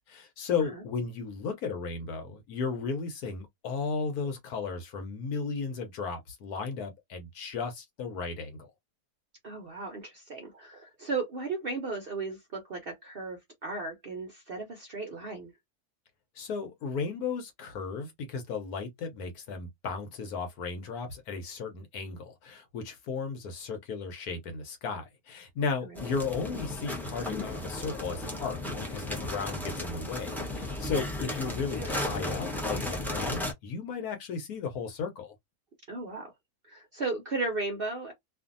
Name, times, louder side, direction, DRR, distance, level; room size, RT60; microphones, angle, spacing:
voice 1, 0.1-8.7 16.4-35.3, left 5 dB, 70° left, 1.2 m, -35 dB
voice 2, 9.4-15.5 25.8-26.0 35.9-36.3 36.7-38.1, right 3 dB, 55° right, 0.7 m, -35 dB
sound 1, 25.9-33.5, left 2 dB, ahead, 0.4 m, -35 dB
2.6 x 2.5 x 2.5 m
omnidirectional pair, 1.7 m